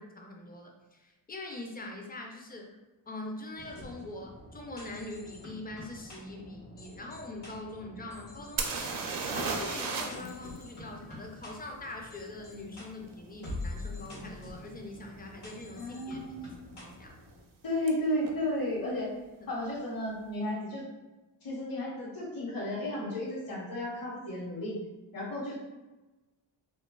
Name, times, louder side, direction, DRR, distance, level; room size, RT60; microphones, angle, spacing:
voice 1, 0.0-2.8 3.1-8.9 9.2-16.2 16.6-17.2 19.4-19.5, left 2 dB, 20° left, 1 dB, 0.4 m, -43 dB
sound 1, 3.6-17.4, left 2 dB, 85° left, 1.0 m, -46 dB
sound 2, 8.6-10.3 10.6-10.7 14.1-14.2 14.8-15.0 15.2-15.8 17.9-18.0 18.2-18.3, right 4 dB, 45° right, 0.5 m, -33 dB
voice 2, 15.8-16.6 17.6-19.1 19.5-20.8 21.4-24.7 25.1-25.7, left 1 dB, 45° left, -4 dB, 1.0 m, -33 dB
2.5 x 2.3 x 2.2 m, 1.1 s
cardioid pair, 60°, 49 cm